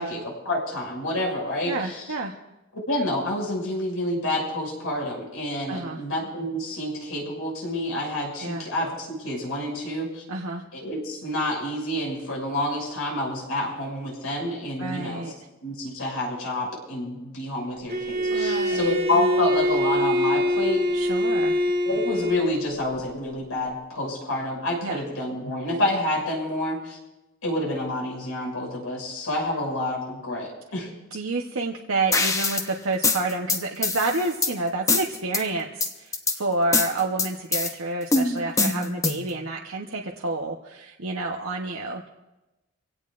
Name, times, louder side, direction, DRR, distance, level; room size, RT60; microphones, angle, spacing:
voice 1, 0.0-2.0 2.9-10.2 10.7-15.2 15.6-20.8 21.8-27.0 27.4-30.9, left 1 dB, 85° left, -1 dB, 6.1 m, -28 dB
voice 2, 1.7-2.4 5.7-6.0 8.4-8.7 10.3-10.6 14.8-15.4 18.3-18.9 20.9-21.6 24.8-25.0 31.1-42.1, right 3 dB, 75° right, 0 dB, 1.0 m, -29 dB
Bowed string instrument, 17.9-22.7, left 1 dB, 45° right, 1.4 m, -24 dB
sound 1, 32.1-32.7 33.0-34.5 34.9-35.4 35.8-36.4 36.7-37.7 38.1-39.3, left 3 dB, 15° left, 0.8 m, -23 dB
25.0 x 17.0 x 2.5 m, 1.0 s
head